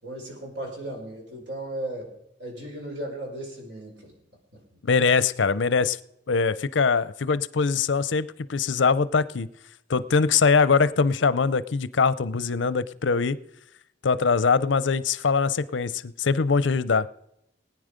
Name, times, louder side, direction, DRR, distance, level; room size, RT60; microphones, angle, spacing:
voice 1, 0.0-2.1 2.4-4.1, right 1 dB, 70° right, 0 dB, 5.1 m, -36 dB
voice 2, 4.8-6.0 6.3-9.5 9.9-13.4 14.0-17.1, left 5 dB, 80° left, 17 dB, 0.6 m, -22 dB
20.0 x 9.5 x 5.2 m, 0.79 s
head